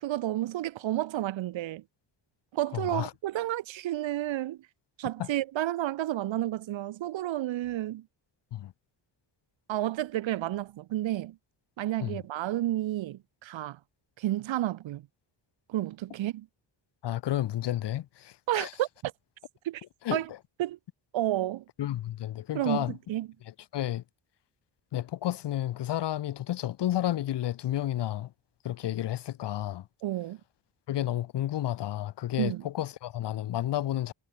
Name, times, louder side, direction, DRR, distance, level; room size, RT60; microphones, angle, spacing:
voice 1, 0.0-1.8 2.5-4.7 5.0-8.1 9.7-11.4 11.8-13.8 14.2-15.0 15.7-16.5 18.5-19.1 19.6-19.8 20.1-20.3 20.6-20.8 21.1-21.6 22.5-23.3 30.0-30.4 32.4-32.6, right 14 dB, 80° right, 1.0 m, -31 dB
voice 2, 2.7-3.1 5.2-5.3 8.5-8.7 12.0-12.2 17.0-18.7 20.0-20.2 21.8-22.9 23.7-24.0 24.9-28.3 28.6-29.8 30.9-34.1, left 13 dB, 65° left, 0.9 m, -31 dB
cardioid pair, 105°, 45 cm